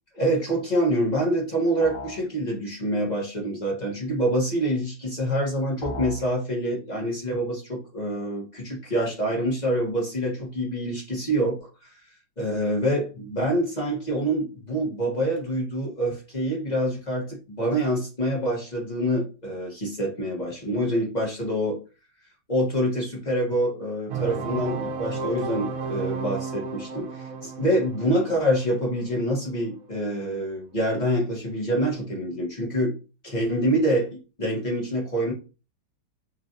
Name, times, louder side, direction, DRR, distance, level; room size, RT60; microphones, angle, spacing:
voice 1, 0.1-11.9 12.4-21.8 22.5-32.9 33.2-35.3, right 1 dB, 35° left, -2 dB, 0.7 m, -26 dB
sound 1, 1.8-2.3 5.8-6.3, left 2 dB, 85° left, 2.2 m, -35 dB
sound 2, 24.1-29.7, right 4 dB, 85° right, 0.7 m, -33 dB
5.5 x 2.3 x 2.6 m, 0.31 s
omnidirectional pair, 2.2 m